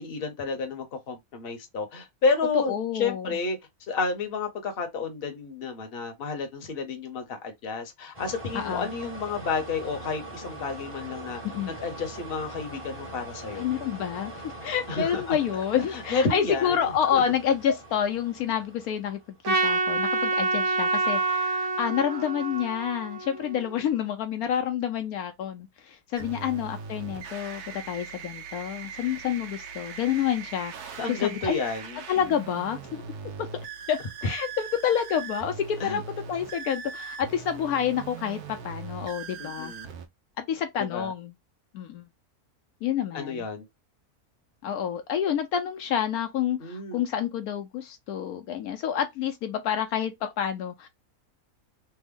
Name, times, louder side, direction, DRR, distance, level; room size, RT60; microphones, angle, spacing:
voice 1, 0.0-3.6 3.9-11.4 11.7-13.6 14.9-15.4 15.9-16.8 17.1-17.2 26.2-26.6 31.0-32.0 35.8-36.0 39.4-39.9 40.8-41.1 43.1-43.7 46.6-47.0, left 4 dB, 45° left, 1.0 m, -31 dB
voice 2, 2.5-3.4 8.5-8.9 11.4-11.7 13.6-19.2 19.5-31.6 32.1-32.8 33.9-36.0 36.3-39.7 40.4-41.3 41.7-42.1 42.8-43.5 44.6-50.9, left 9 dB, 75° left, 1.1 m, -28 dB
sound 1, 8.1-19.4, right 2 dB, 25° right, 1.0 m, -42 dB
Trumpet, 19.4-23.8, right 3 dB, 60° right, 1.0 m, -27 dB
sound 2, 26.2-40.1, right 6 dB, 85° right, 1.2 m, -40 dB
3.4 x 2.1 x 3.6 m
omnidirectional pair, 1.6 m